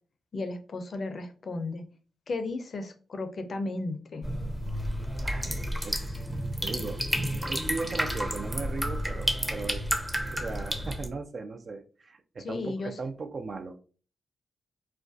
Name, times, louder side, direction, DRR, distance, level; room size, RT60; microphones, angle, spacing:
voice 1, 0.3-1.8 2.3-4.3 12.4-12.9, left 2 dB, 55° left, 8 dB, 0.4 m, -34 dB
sound 1, 4.2-11.1, equal, 10° right, 0.6 m, -31 dB
voice 2, 6.6-7.0 7.4-9.8 10.3-13.8, right 4 dB, 55° right, 7 dB, 0.3 m, -37 dB
2.4 x 2.2 x 2.4 m, 0.38 s
hypercardioid pair, 40°, 0 cm